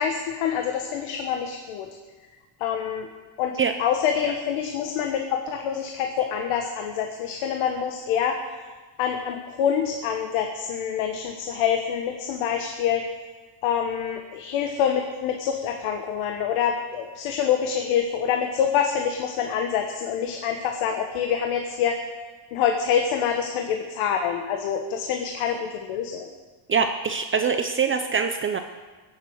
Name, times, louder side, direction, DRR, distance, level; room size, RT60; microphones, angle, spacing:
voice 1, 0.0-2.0 2.6-3.1 3.4-8.4 9.0-13.0 13.6-22.0 22.5-26.3, left 8 dB, 85° left, 4 dB, 1.4 m, -26 dB
voice 2, 26.7-28.6, right 6 dB, 25° right, 7 dB, 0.6 m, -23 dB
17.5 x 8.1 x 7.9 m, 1.4 s
cardioid pair, 145°, 47 cm